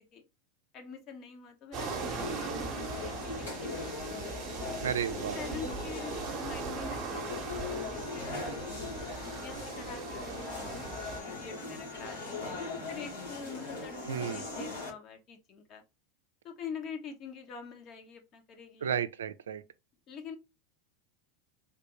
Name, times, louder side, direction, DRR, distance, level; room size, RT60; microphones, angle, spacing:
voice 1, 0.7-3.3 3.6-3.9 4.6-4.8 5.3-8.9 9.4-15.8 16.4-18.9 20.1-20.4, left 6 dB, 45° left, 1.1 m, -45 dB
sound 1, 1.7-11.2, right 6 dB, 45° right, 0.8 m, -40 dB
sound 2, 1.8-14.9, left 2 dB, 85° left, 1.7 m, -39 dB
voice 2, 4.8-5.4 14.1-14.4 18.8-19.6, right 8 dB, 90° right, 0.3 m, -32 dB
3.4 x 2.5 x 2.9 m
hypercardioid pair, 100°, 0 cm